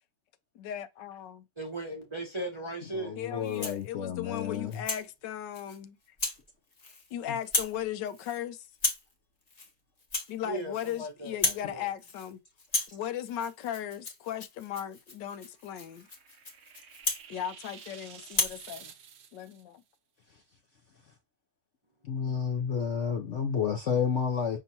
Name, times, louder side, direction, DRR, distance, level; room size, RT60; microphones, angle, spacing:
voice 1, 0.5-1.5 3.2-6.0 7.1-8.7 10.3-12.4 12.9-16.1 17.3-18.9 19.3-19.8, left 10 dB, 80° left, 1.3 m, -37 dB
voice 2, 1.6-3.2 10.4-11.9, right 2 dB, 25° right, 0.7 m, -37 dB
voice 3, 2.9-4.8 7.3-7.4 20.3-20.4 22.0-24.6, left 7 dB, 60° left, 0.8 m, -31 dB
Rattle (instrument), 3.4-3.9 4.4-5.1 5.5-5.8 6.2-6.4 6.7-7.1 7.4-7.8 8.0-8.4 8.7-9.1 9.5-9.7 10.0-11.0 11.3-11.7 12.0-12.3 12.6-17.9 18.3-18.6, left 3 dB, 30° left, 0.8 m, -34 dB
sound 1, 15.5-19.6, right 7 dB, 60° right, 0.9 m, -50 dB
5.6 x 3.4 x 2.7 m
omnidirectional pair, 1.9 m